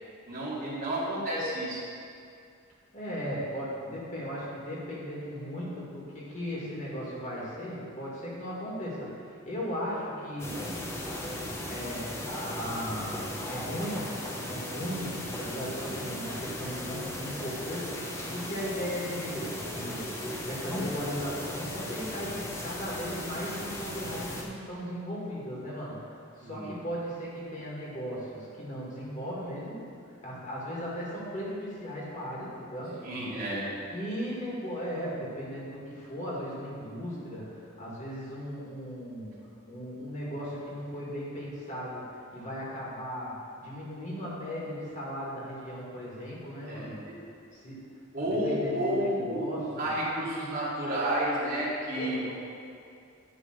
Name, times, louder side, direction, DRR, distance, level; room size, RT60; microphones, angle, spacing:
voice 1, 0.3-1.8 26.4-26.7 32.9-33.7 46.6-47.1 48.1-52.3, right 1 dB, 45° right, -8 dB, 2.3 m, -31 dB
voice 2, 2.9-10.6 11.7-20.1 20.4-29.8 30.2-33.0 33.9-39.3 39.7-47.0 47.5-47.8 48.2-49.9 51.9-52.2, equal, 35° left, -6 dB, 2.1 m, -37 dB
sound 1, 10.4-24.4, left 1 dB, 10° left, 1.0 m, -37 dB
11.0 x 3.7 x 6.6 m, 2.4 s
head